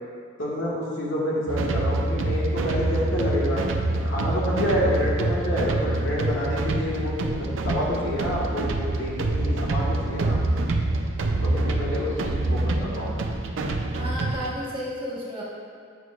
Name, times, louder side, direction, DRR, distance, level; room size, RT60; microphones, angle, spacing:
voice 1, 0.4-3.6 4.0-10.4 11.4-13.1, equal, 75° left, -5 dB, 1.6 m, -28 dB
sound 1, 1.5-14.6, right 2 dB, 80° right, 0.5 m, -26 dB
voice 2, 12.8-13.1 13.9-15.4, equal, 25° right, -7 dB, 1.4 m, -33 dB
9.1 x 6.3 x 2.4 m, 2.2 s
head